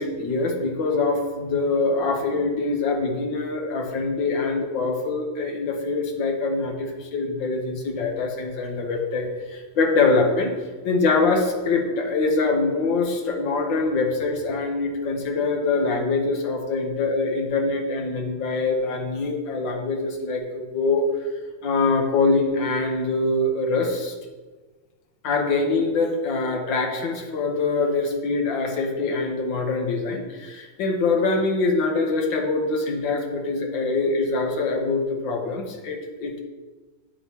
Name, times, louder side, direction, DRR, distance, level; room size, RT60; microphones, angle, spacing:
voice 1, 0.0-10.5 10.8-21.1 21.6-24.1 25.2-36.4, left 3 dB, 65° left, 2 dB, 1.7 m, -24 dB
8.8 x 6.9 x 3.0 m, 1.3 s
omnidirectional pair, 2.4 m